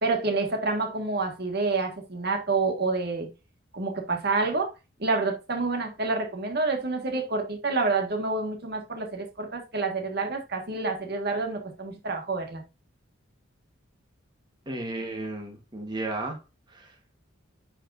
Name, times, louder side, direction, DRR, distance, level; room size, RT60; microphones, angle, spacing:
voice 1, 0.0-3.3 3.7-4.7 5.0-12.6, right 3 dB, 50° right, 1.6 m, -28 dB
voice 2, 14.7-16.4 16.7-16.9, right 2 dB, 20° right, 1.3 m, -34 dB
9.7 x 4.8 x 2.6 m
head